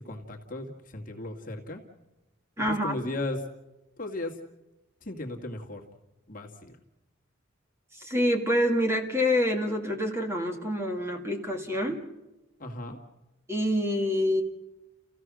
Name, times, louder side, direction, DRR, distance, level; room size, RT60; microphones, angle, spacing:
voice 1, 0.0-1.8 2.7-3.4 4.0-4.4 5.0-5.8 6.3-6.8 12.6-13.0, left 2 dB, 40° left, 2 dB, 2.1 m, -36 dB
voice 2, 2.6-2.9 7.9-12.0 13.5-14.4, left 1 dB, 15° right, 2 dB, 2.0 m, -26 dB
30.0 x 16.0 x 6.3 m, 1.0 s
head